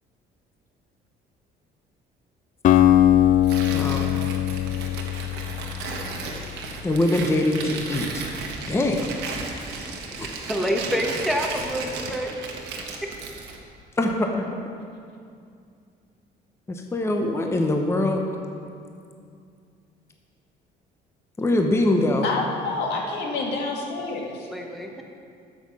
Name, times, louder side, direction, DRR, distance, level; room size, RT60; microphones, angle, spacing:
Acoustic guitar, 2.6-6.7, left 11 dB, 50° left, 0.5 m, -21 dB
Tearing, 3.4-13.6, right 4 dB, 85° right, 1.4 m, -35 dB
voice 1, 3.7-4.1 6.8-8.2 8.7-9.1 10.2-10.3 14.0-14.5 16.7-18.2 21.4-22.3, left 1 dB, 15° left, 2 dB, 0.9 m, -23 dB
voice 2, 10.5-12.6 13.0-13.1 24.5-25.0, equal, ahead, 1 dB, 1.2 m, -27 dB
voice 3, 22.2-24.5, left 3 dB, 80° left, -1 dB, 2.0 m, -28 dB
9.7 x 7.6 x 6.2 m, 2.4 s
cardioid pair, 110°, 17 cm